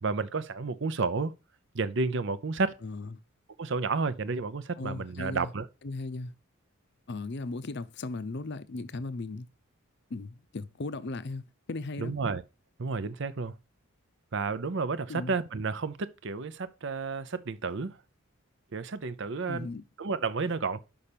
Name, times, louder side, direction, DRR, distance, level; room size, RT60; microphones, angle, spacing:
voice 1, 0.0-1.3 1.7-2.8 3.6-5.7 12.0-12.4 12.8-13.5 14.3-18.0 18.7-19.7 20.0-20.8, right 4 dB, 55° right, 0.6 m, -31 dB
voice 2, 2.8-3.1 4.8-5.5 5.8-6.3 7.1-9.5 10.1-11.4 11.7-12.2 15.1-15.4 19.5-19.8, left 3 dB, 50° left, 0.6 m, -37 dB
5.8 x 5.5 x 6.7 m
head